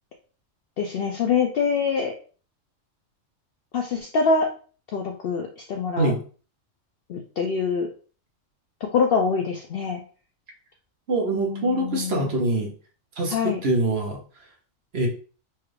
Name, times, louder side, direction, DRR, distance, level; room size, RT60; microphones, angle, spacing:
voice 1, 0.8-2.1 3.7-4.5 4.9-6.1 7.1-7.9 8.8-10.0 11.3-12.3 13.3-13.6, left 5 dB, 60° left, 2 dB, 0.6 m, -25 dB
voice 2, 11.1-12.7 13.2-13.3 13.6-14.2 14.9-15.1, right 2 dB, 55° right, 0 dB, 1.1 m, -24 dB
4.5 x 2.4 x 3.2 m, 0.39 s
omnidirectional pair, 1.3 m